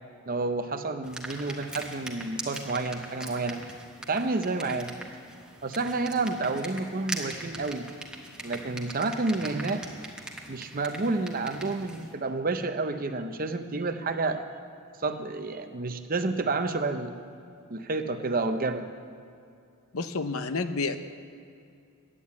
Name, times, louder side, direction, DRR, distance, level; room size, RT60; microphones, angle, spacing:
voice 1, 0.3-3.6 4.1-4.9 5.6-7.9 8.4-9.8 10.5-14.4 15.0-17.1 17.7-18.9, right 3 dB, 40° right, 8 dB, 0.7 m, -30 dB
sound 1, 1.0-12.1, right 1 dB, 5° right, 1.2 m, -41 dB
voice 2, 19.9-21.0, left 4 dB, 75° left, 10 dB, 0.7 m, -29 dB
11.5 x 9.3 x 8.4 m, 2.4 s
head